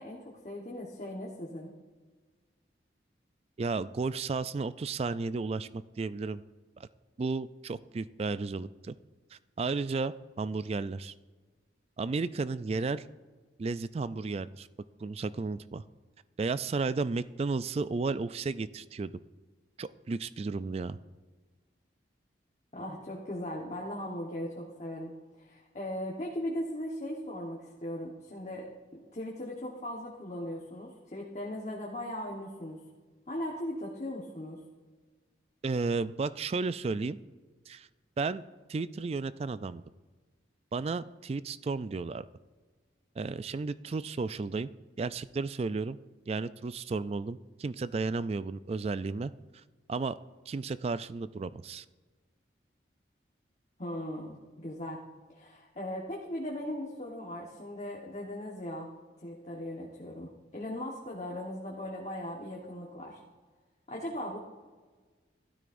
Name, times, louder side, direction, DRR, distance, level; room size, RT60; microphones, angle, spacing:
voice 1, 0.0-1.7 22.7-25.1 25.4-28.7 29.1-32.8 33.3-34.6 53.8-55.0 55.3-58.9 59.2-63.2 63.9-64.4, left 1 dB, 40° left, -2 dB, 1.2 m, -38 dB
voice 2, 3.6-6.4 6.8-6.9 7.2-8.9 9.3-11.1 12.0-13.0 13.6-14.7 15.0-15.8 16.4-19.1 19.8-21.0 35.6-37.2 37.7-37.9 38.2-38.4 38.7-39.8 40.7-42.2 43.2-44.7 45.0-46.0 46.3-49.3 49.9-50.2 50.5-51.8, right 4 dB, 35° right, 15 dB, 0.3 m, -33 dB
16.0 x 12.5 x 2.6 m, 1.4 s
head